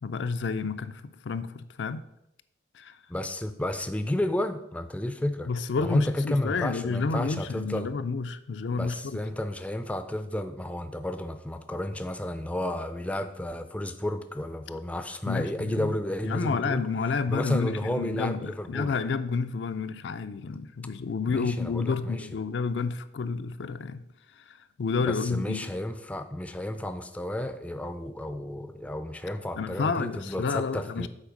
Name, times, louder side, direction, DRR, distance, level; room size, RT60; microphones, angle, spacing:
voice 1, 0.0-2.1 2.7-3.0 5.5-9.2 15.3-15.9 16.2-24.0 24.4-25.7 29.6-31.1, left 4 dB, 75° left, 0.4 m, -30 dB
voice 2, 3.1-5.5 5.8-7.9 8.8-16.8 17.3-18.9 21.3-22.3 25.0-31.1, left 1 dB, 5° left, 0.4 m, -32 dB
7.4 x 4.3 x 5.2 m
head